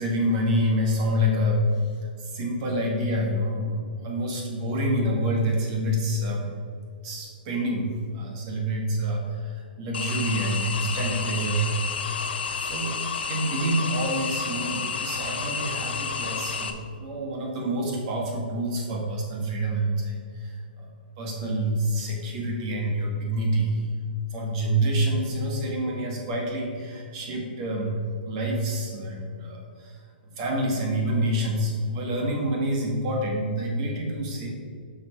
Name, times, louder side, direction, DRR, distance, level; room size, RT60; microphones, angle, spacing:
voice 1, 0.0-1.8 2.2-6.5 7.0-11.8 12.5-13.0 13.3-20.9 21.2-23.9 24.3-28.0 28.3-30.0 30.3-34.5, right 1 dB, 35° right, -1 dB, 2.0 m, -27 dB
sound 1, 9.9-16.7, left 5 dB, 80° left, 0.9 m, -31 dB
7.1 x 6.3 x 4.6 m, 2.3 s
hypercardioid pair, 155°, 5 cm